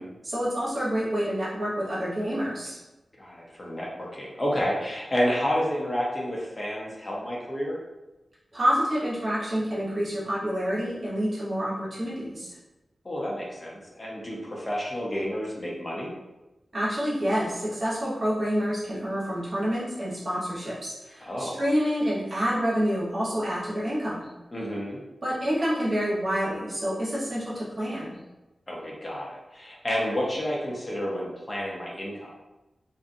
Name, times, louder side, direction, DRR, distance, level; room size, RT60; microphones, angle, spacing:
voice 1, 0.2-2.8 8.5-12.6 16.7-24.3 25.2-28.2, equal, 55° right, -8 dB, 0.9 m, -28 dB
voice 2, 3.2-7.8 13.0-16.1 21.2-21.6 24.5-25.0 28.7-32.3, equal, 30° left, -4 dB, 0.8 m, -30 dB
2.6 x 2.4 x 2.5 m, 1.0 s
wide cardioid pair, 70°, 0 cm